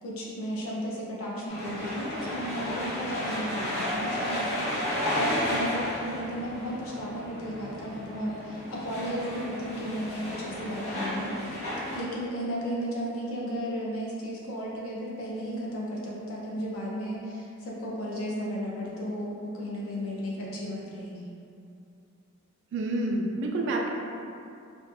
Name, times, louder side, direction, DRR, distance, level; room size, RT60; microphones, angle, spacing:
voice 1, 0.0-11.3 11.9-21.2, equal, 70° left, -5 dB, 0.6 m, -34 dB
sound 1, 1.5-12.0, left 1 dB, 30° left, 0.9 m, -33 dB
voice 2, 22.7-23.9, right 2 dB, 55° right, 1 dB, 0.3 m, -28 dB
2.5 x 2.3 x 2.5 m, 2.5 s
head